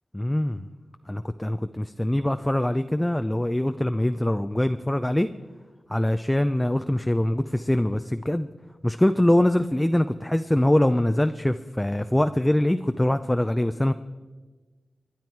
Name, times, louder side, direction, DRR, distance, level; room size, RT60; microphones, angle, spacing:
voice 1, 0.1-0.7 1.1-5.3 5.9-8.5 8.8-13.9, left 1 dB, 10° left, 9 dB, 0.5 m, -23 dB
22.5 x 10.5 x 4.6 m, 1.3 s
cardioid pair, 60°, 0 cm